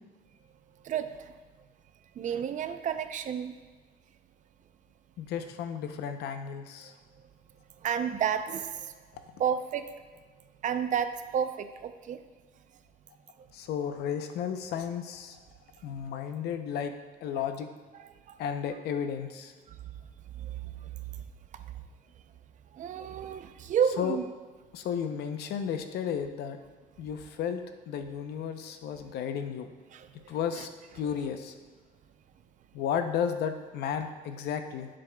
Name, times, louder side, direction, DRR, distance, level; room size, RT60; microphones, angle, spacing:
voice 1, 0.8-1.3 2.2-3.6 7.8-8.9 9.4-9.9 10.6-12.2 16.1-16.2 17.9-18.4 19.7-19.8 20.4-20.9 22.7-24.2 28.1-28.2 29.9-30.1 30.6-30.7, right 8 dB, 50° right, 10 dB, 0.5 m, -31 dB
voice 2, 5.2-6.9 13.5-15.4 15.8-16.9 17.2-17.7 18.4-19.5 24.0-24.2 24.7-26.6 27.0-29.7 30.3-30.7 30.9-31.5 32.7-34.9, left 8 dB, 75° left, 7 dB, 0.7 m, -33 dB
10.0 x 7.6 x 2.3 m, 1.4 s
cardioid pair, 110°, 17 cm